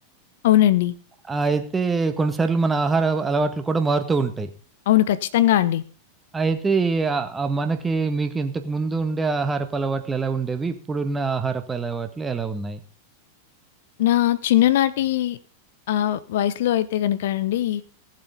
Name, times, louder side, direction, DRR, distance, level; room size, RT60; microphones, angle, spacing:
voice 1, 0.4-0.9 4.9-5.8 14.0-15.4 15.9-17.8, left 13 dB, 55° left, 16 dB, 0.8 m, -20 dB
voice 2, 1.3-4.5 6.3-12.8, right 4 dB, 15° right, 8 dB, 1.7 m, -24 dB
17.5 x 7.8 x 5.2 m, 0.39 s
figure-of-eight pair, 90°, 0 cm